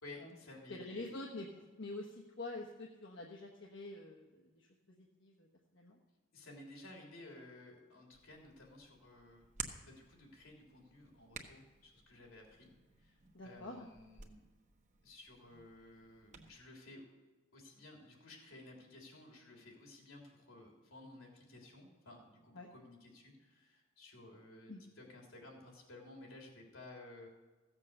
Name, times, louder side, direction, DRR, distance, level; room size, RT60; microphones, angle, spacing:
voice 1, 0.0-1.2 6.3-9.4 9.8-12.7 13.0-14.4 15.0-17.1 17.5-27.3, left 2 dB, 85° left, 0 dB, 3.6 m, -55 dB
voice 2, 0.7-1.5 1.8-5.5 5.7-6.0 13.3-13.9 22.5-22.7 24.7-24.8, left 2 dB, 60° left, -1 dB, 1.1 m, -47 dB
Hands, 8.1-16.5, right 6 dB, 35° right, 1.0 m, -53 dB
15.5 x 7.5 x 6.5 m, 1.2 s
head